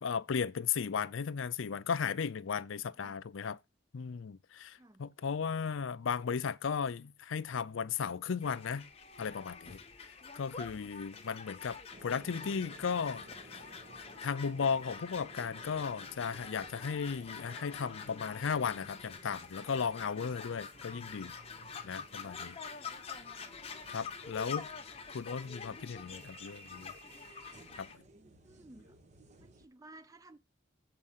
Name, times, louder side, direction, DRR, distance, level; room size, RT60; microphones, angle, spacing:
voice 1, 0.0-3.6 3.9-8.9 9.2-9.8 10.4-13.2 14.2-21.3 21.8-22.6 23.9-24.7 25.1-26.9 27.8-27.9, left 6 dB, 75° left, 0.5 m, -35 dB
sound 1, 8.4-27.9, left 5 dB, 30° left, 1.0 m, -47 dB
sound 2, 11.9-29.7, right 2 dB, 35° right, 1.0 m, -57 dB
voice 2, 28.4-29.0 29.4-30.4, right 2 dB, 15° right, 0.4 m, -56 dB
7.7 x 4.4 x 5.6 m
head